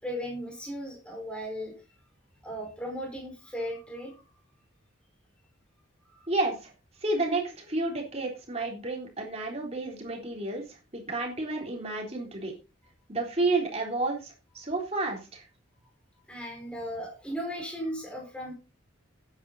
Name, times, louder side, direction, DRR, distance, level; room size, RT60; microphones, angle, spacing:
voice 1, 0.0-1.7 2.4-4.2 6.1-6.3 16.3-18.5, equal, 5° left, -1 dB, 4.9 m, -36 dB
voice 2, 6.3-6.7 7.0-12.5 13.1-15.4, right 2 dB, 30° right, 0 dB, 3.6 m, -31 dB
12.0 x 9.6 x 4.1 m, 0.32 s
head